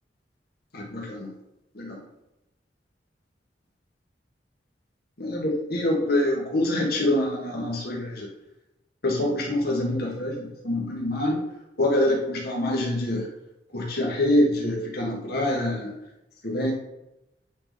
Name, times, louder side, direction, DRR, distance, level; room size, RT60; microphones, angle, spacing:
voice 1, 0.7-1.3 1.7-2.0 5.2-8.3 9.0-11.4 11.8-13.3 13.7-15.9 16.4-16.7, left 1 dB, 60° left, -2 dB, 1.9 m, -25 dB
9.6 x 4.2 x 6.9 m, 0.91 s
head